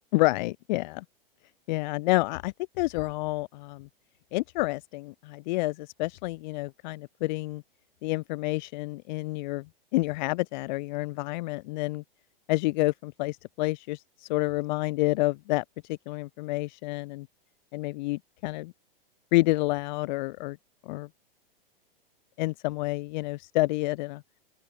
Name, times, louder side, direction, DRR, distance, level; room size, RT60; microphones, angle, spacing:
voice 1, 0.1-1.0 1.7-3.9 4.3-7.6 8.0-9.7 9.9-12.0 12.5-17.3 17.7-18.7 19.3-20.6 20.8-21.1 22.4-24.2, left 21 dB, 50° left, 6.8 m, -29 dB
open air
figure-of-eight pair, 105°, 29 cm